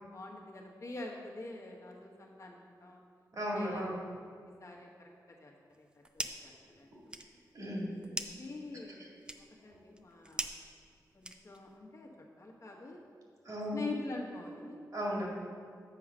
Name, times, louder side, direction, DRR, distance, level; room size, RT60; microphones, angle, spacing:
voice 1, 0.0-3.0 3.5-4.0 4.4-5.1 5.4-6.9 8.0-10.5 11.1-12.1 12.4-13.0 13.7-14.8, left 2 dB, 45° left, -1 dB, 1.3 m, -45 dB
voice 2, 3.3-4.0 7.5-8.0 13.4-13.8 14.9-15.3, equal, 55° right, -3 dB, 2.0 m, -35 dB
sound 1, 5.7-6.6 6.9-11.8, right 1 dB, 15° right, 0.5 m, -43 dB
7.9 x 4.8 x 6.2 m, 2.2 s
wide cardioid pair, 110°, 7 cm